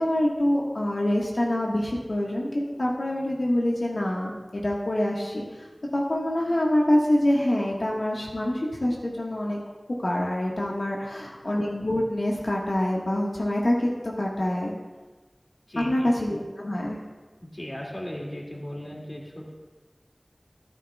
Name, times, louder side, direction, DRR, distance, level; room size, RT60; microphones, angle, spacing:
voice 1, 0.0-5.7 5.9-9.6 10.0-14.7 15.7-17.0, left 1 dB, 90° left, -4 dB, 1.5 m, -26 dB
voice 2, 15.7-16.1 17.4-19.5, equal, 45° left, -2 dB, 2.3 m, -37 dB
14.0 x 11.5 x 2.3 m, 1.3 s
wide cardioid pair, 45°, 0 cm